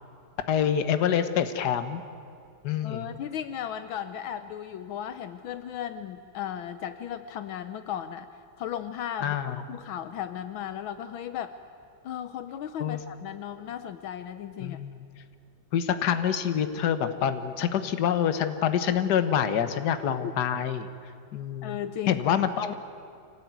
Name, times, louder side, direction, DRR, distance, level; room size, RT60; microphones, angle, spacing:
voice 1, 0.5-2.0 2.6-3.1 9.2-9.6 12.8-13.0 14.6-15.0 15.7-20.9 21.3-21.8 22.1-22.7, left 9 dB, 55° left, 10 dB, 1.6 m, -26 dB
voice 2, 2.8-8.3 8.6-9.4 9.7-11.5 12.0-14.8 20.2-20.3 21.6-22.2, left 10 dB, 80° left, 11 dB, 1.5 m, -35 dB
25.5 x 18.0 x 9.4 m, 2.5 s
omnidirectional pair, 2.2 m